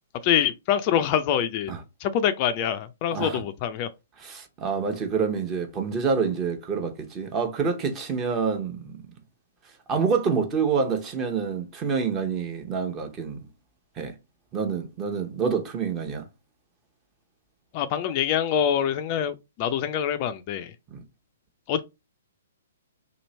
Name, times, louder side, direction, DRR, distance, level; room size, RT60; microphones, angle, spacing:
voice 1, 0.2-1.7 2.0-3.9 17.7-20.7 21.7-21.8, left 9 dB, 35° left, 0.3 m, -25 dB
voice 2, 3.1-3.5 4.2-9.0 9.9-13.5 14.0-14.2 14.5-16.3 20.9-21.0, right 5 dB, 25° right, 0.8 m, -27 dB
3.0 x 2.7 x 4.0 m
figure-of-eight pair, 120°, 0 cm